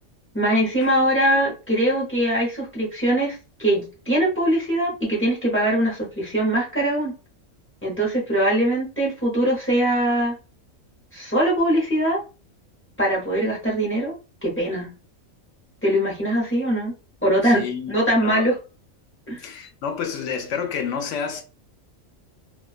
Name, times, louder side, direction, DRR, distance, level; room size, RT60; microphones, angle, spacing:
voice 1, 0.3-7.1 7.8-10.3 11.1-12.2 13.0-14.2 14.4-14.9 15.8-16.9 17.2-18.6 19.3-19.4, right 1 dB, 10° left, 0.6 m, -22 dB
voice 2, 17.4-18.4 19.4-21.4, left 7 dB, 70° left, 0.9 m, -29 dB
2.3 x 2.3 x 2.4 m
omnidirectional pair, 1.4 m